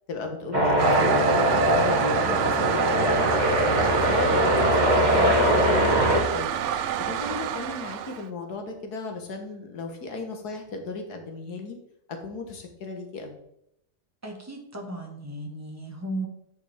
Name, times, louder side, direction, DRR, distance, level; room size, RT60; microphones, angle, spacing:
voice 1, 0.1-3.2 3.7-6.5 7.0-11.8 12.2-13.4, left 3 dB, 75° left, 4 dB, 1.8 m, -35 dB
sound 1, 0.5-6.2, equal, 25° right, 2.1 m, -22 dB
Toilet flush, 0.8-8.3, right 9 dB, 70° right, 0.7 m, -28 dB
voice 2, 14.2-16.3, right 1 dB, 10° right, 1 dB, 1.3 m, -35 dB
9.4 x 5.3 x 3.6 m, 0.76 s
omnidirectional pair, 1.7 m